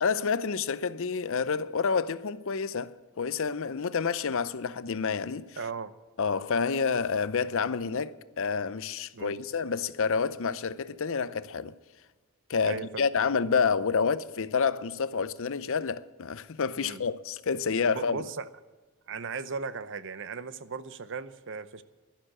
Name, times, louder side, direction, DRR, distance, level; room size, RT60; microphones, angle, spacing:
voice 1, 0.0-5.6 6.2-11.7 12.5-18.3, left 5 dB, 60° left, 0.6 m, -29 dB
voice 2, 5.6-5.9 9.1-9.4 12.6-13.0 16.8-17.0 17.9-18.5 19.1-21.8, right 5 dB, 55° right, 0.7 m, -37 dB
12.0 x 11.5 x 7.5 m
head